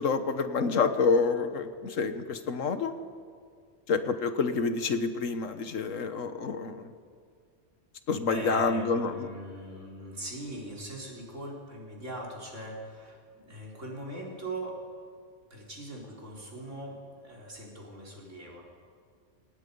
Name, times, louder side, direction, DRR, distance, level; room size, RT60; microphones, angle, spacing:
voice 1, 0.0-2.9 3.9-6.9 8.1-9.3, left 4 dB, 90° left, 9 dB, 1.5 m, -28 dB
voice 2, 8.2-13.2 13.4-14.8 15.5-18.6, right 1 dB, 75° right, -3 dB, 4.7 m, -40 dB
28.0 x 17.5 x 5.4 m, 2.1 s
omnidirectional pair, 1.3 m